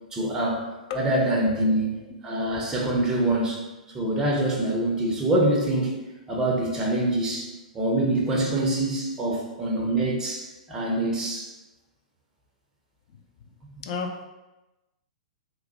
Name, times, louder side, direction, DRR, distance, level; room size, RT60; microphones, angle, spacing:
voice 1, 0.1-0.7 0.9-1.9 2.2-3.6 3.9-5.9 6.3-11.5, right 1 dB, 15° right, -3 dB, 0.5 m, -25 dB
voice 2, 1.5-2.0 13.1-14.2, left 5 dB, 40° left, 4 dB, 0.4 m, -35 dB
2.8 x 2.1 x 2.9 m, 1.0 s
figure-of-eight pair, 110°, 4 cm